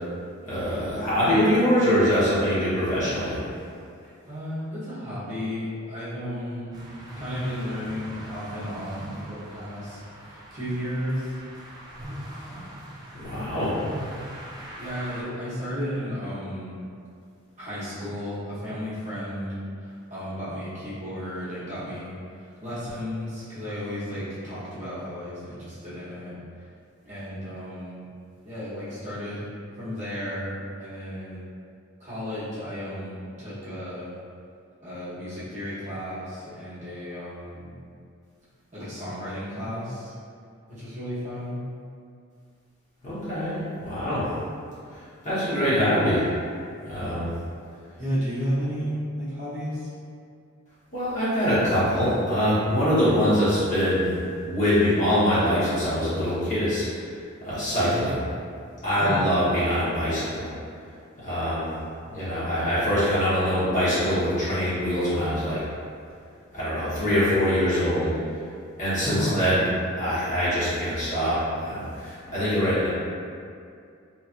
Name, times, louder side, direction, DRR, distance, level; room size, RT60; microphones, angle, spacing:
voice 1, 0.4-3.4 13.1-13.8 43.0-43.6 43.8-44.3 44.9-46.2 46.8-47.3 50.9-54.1 54.4-56.9 57.4-58.2 58.8-60.5 61.2-61.7 62.1-65.6 66.5-68.2 68.8-69.6 70.0-72.9, equal, 35° left, -12 dB, 1.1 m, -23 dB
voice 2, 4.2-6.7 7.2-11.3 13.3-13.8 14.8-16.8 17.6-26.4 27.0-28.0 28.4-29.5 29.7-31.4 32.0-34.1 34.8-37.8 38.7-40.1 40.7-41.6 45.6-45.8 48.0-49.9 57.8-58.0 59.0-59.4 69.0-69.6, equal, 35° right, -12 dB, 0.8 m, -33 dB
sound 1, 6.7-15.2, equal, 20° right, 0.4 m, -41 dB
2.9 x 2.4 x 2.4 m, 2.3 s
head